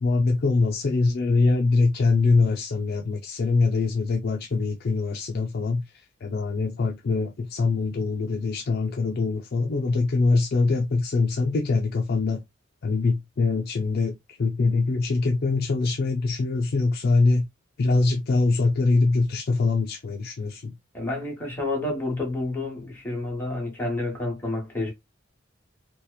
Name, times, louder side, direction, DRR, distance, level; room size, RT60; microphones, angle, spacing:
voice 1, 0.0-5.8 6.2-12.4 12.8-14.1 14.4-17.5 17.8-20.7, left 3 dB, 50° left, 0.4 m, -23 dB
voice 2, 20.9-24.9, left 2 dB, 10° left, 1.1 m, -29 dB
2.8 x 2.1 x 2.2 m
head